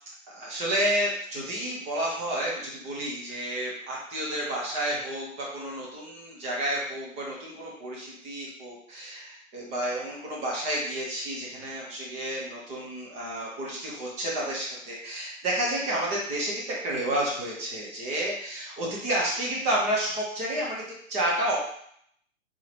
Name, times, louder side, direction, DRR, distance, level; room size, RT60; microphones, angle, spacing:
voice 1, 0.3-21.6, right 1 dB, 15° right, -3 dB, 0.8 m, -30 dB
3.9 x 2.8 x 3.2 m, 0.67 s
hypercardioid pair, 135°, 42 cm